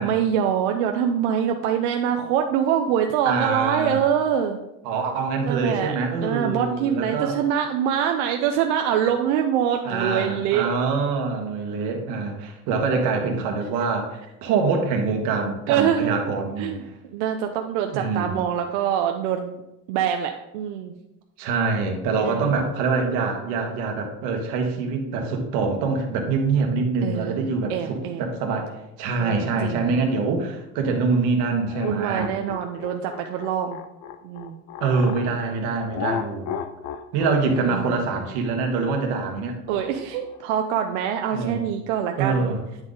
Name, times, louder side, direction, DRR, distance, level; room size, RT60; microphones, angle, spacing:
voice 1, 0.0-4.6 5.5-6.0 6.2-10.7 15.7-16.3 16.6-16.8 17.1-19.6 19.9-20.9 22.2-22.6 27.0-28.3 29.2-30.0 31.8-33.8 34.2-34.6 37.7-37.9 39.7-42.5, right 9 dB, 85° right, 4 dB, 0.6 m, -24 dB
voice 2, 3.2-4.0 4.8-7.4 9.8-16.9 17.9-18.4 21.4-28.7 29.0-32.3 34.8-36.5 37.1-39.6 41.3-41.6 42.2-42.6, right 4 dB, 60° right, 3 dB, 1.4 m, -25 dB
sound 1, 31.7-35.3 35.9-40.4, left 8 dB, 45° left, 0.5 m, -35 dB
8.9 x 3.9 x 3.7 m, 0.90 s
cardioid pair, 160°, 34 cm